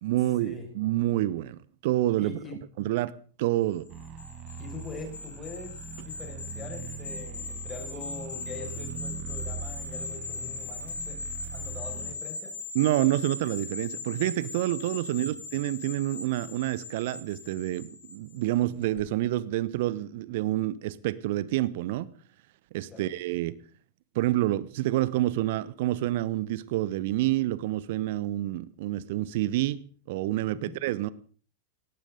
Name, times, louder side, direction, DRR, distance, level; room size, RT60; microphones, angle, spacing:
voice 1, 0.0-2.4 2.8-3.1 3.4-3.9 12.7-22.1 22.7-23.5 24.1-29.8 30.1-31.1, right 15 dB, 50° right, 0.9 m, -28 dB
voice 2, 2.2-2.6 4.6-12.6 15.1-15.3 22.9-23.1 30.5-30.7, left 3 dB, 20° left, 6.0 m, -43 dB
sound 1, 3.9-18.5 18.8-19.0, left 4 dB, 65° left, 6.4 m, -40 dB
sound 2, 3.9-12.2, right 7 dB, 35° right, 1.6 m, -41 dB
18.5 x 18.5 x 3.9 m
figure-of-eight pair, 90°, 0 cm